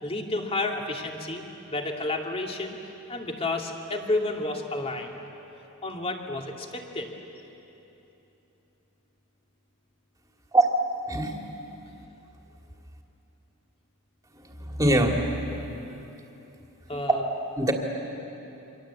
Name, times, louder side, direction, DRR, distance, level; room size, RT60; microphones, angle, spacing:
voice 1, 0.0-1.4 1.7-2.8 3.1-5.2 5.8-7.1 16.9-17.2, left 2 dB, 25° left, 2 dB, 2.4 m, -31 dB
voice 2, 14.3-15.3 17.6-17.7, right 1 dB, 15° right, 2 dB, 2.6 m, -23 dB
29.0 x 24.5 x 8.4 m, 3.0 s
head